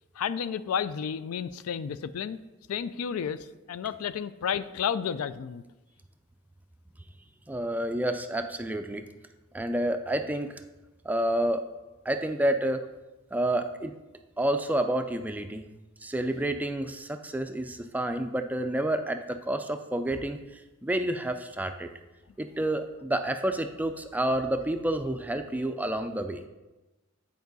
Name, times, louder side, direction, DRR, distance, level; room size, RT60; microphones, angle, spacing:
voice 1, 0.2-2.4 2.7-5.6, left 7 dB, 80° left, 15 dB, 0.4 m, -31 dB
voice 2, 7.5-9.0 9.5-10.6 11.0-11.7 12.1-12.8 13.3-13.9 14.4-15.6 16.0-21.9 22.4-26.4, right 1 dB, 5° right, 7 dB, 0.3 m, -29 dB
9.4 x 4.6 x 4.0 m, 1.1 s
head